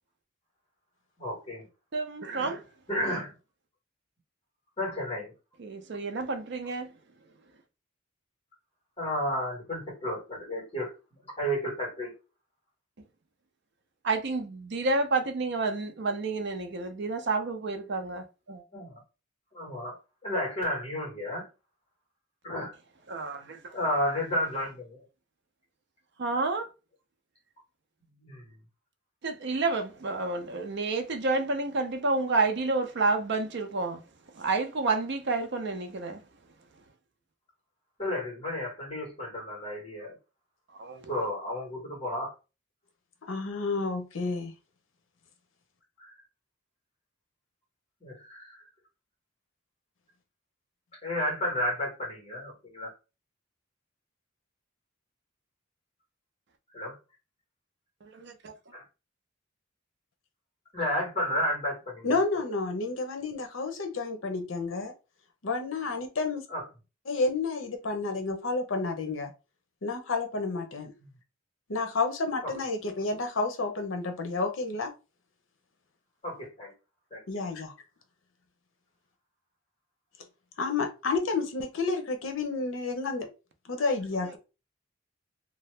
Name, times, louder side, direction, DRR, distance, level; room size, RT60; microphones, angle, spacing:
voice 1, 1.2-1.7 2.9-3.3 4.8-5.3 9.0-10.9 11.4-12.1 18.7-19.0 19.5-20.0 20.2-21.5 22.4-22.7 23.7-25.0 28.2-28.5 38.0-40.1 41.1-42.3 46.0-46.1 48.0-48.6 51.0-52.9 56.7-56.9 58.7-58.8 60.7-62.1 66.5-66.6 71.0-71.1 72.4-72.5 76.2-76.7 77.1-77.4, equal, 30° left, 1.5 m, -32 dB
voice 2, 1.9-2.7 5.6-7.0 14.0-18.6 23.1-23.8 26.2-26.7 29.2-34.0 34.3-36.2 40.7-41.1 58.0-58.5 84.2-84.4, right 3 dB, 55° right, 0.5 m, -30 dB
voice 3, 43.3-44.5 62.0-64.9 65.4-66.4 67.1-69.3 69.8-70.9 71.7-74.9 77.3-77.7 80.6-83.3 83.6-84.4, left 3 dB, 70° left, 0.7 m, -30 dB
2.7 x 2.2 x 3.2 m
head